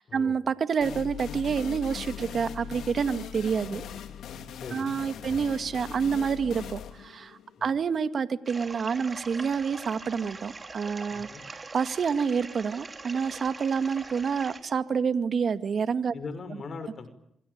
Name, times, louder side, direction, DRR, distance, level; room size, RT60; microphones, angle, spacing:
voice 1, 0.0-3.9 4.7-16.1, right 6 dB, 60° right, 11 dB, 2.0 m, -28 dB
sound 1, 0.8-8.3, left 9 dB, 85° left, 3.0 m, -40 dB
voice 2, 4.5-5.4 7.6-7.7 11.1-11.4 16.1-17.1, left 4 dB, 60° left, 10 dB, 6.5 m, -41 dB
sound 2, 8.5-14.6, right 3 dB, 35° right, 4.8 m, -43 dB
27.0 x 25.5 x 8.7 m, 0.73 s
cardioid pair, 60°, 0 cm